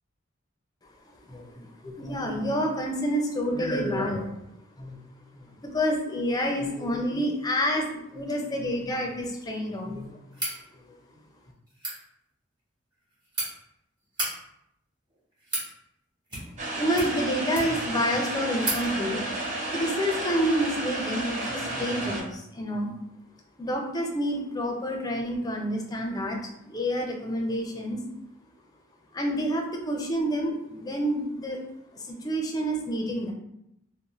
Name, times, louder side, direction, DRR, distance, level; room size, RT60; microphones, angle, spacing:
voice 1, 1.3-4.3 4.8-5.0 5.3-10.1 10.9-11.0 16.8-19.2 19.7-22.9 23.6-26.4 26.7-28.0 29.1-31.6 31.9-33.3, equal, 20° left, 1 dB, 0.4 m, -28 dB
sound 1, 10.3-10.6 11.7-12.0 12.9-13.5 14.0-14.3 15.1-15.7 16.3-16.6 16.9-17.9 18.2-18.3 18.6-18.8, right 2 dB, 20° right, 1.0 m, -32 dB
sound 2, 16.6-22.2, right 2 dB, 40° right, 0.6 m, -32 dB
2.5 x 2.1 x 3.0 m, 0.79 s
head